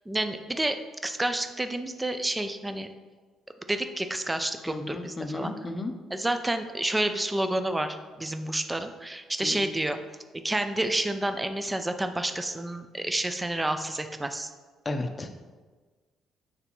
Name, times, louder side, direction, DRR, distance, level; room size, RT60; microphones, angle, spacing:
voice 1, 0.1-0.8 1.0-2.9 3.7-5.5 6.1-10.0 10.4-14.5, right 1 dB, 15° right, 8 dB, 0.5 m, -29 dB
voice 2, 4.7-5.9 9.4-9.6 14.8-15.3, left 2 dB, 25° left, 6 dB, 0.6 m, -33 dB
9.4 x 3.4 x 3.0 m, 1.4 s
cardioid pair, 85°, 0 cm